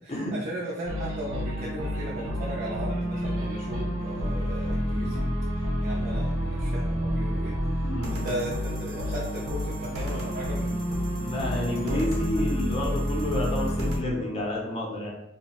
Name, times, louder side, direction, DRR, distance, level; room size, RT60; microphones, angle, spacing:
voice 1, 0.0-5.3 5.6-11.0 11.5-12.1, right 1 dB, 45° right, -5 dB, 0.4 m, -36 dB
sound 1, 0.9-14.0, equal, 90° right, 0.8 m, -29 dB
voice 2, 7.8-8.3 11.2-15.1, left 1 dB, 30° left, -3 dB, 0.5 m, -30 dB
2.7 x 2.0 x 2.8 m, 0.84 s
head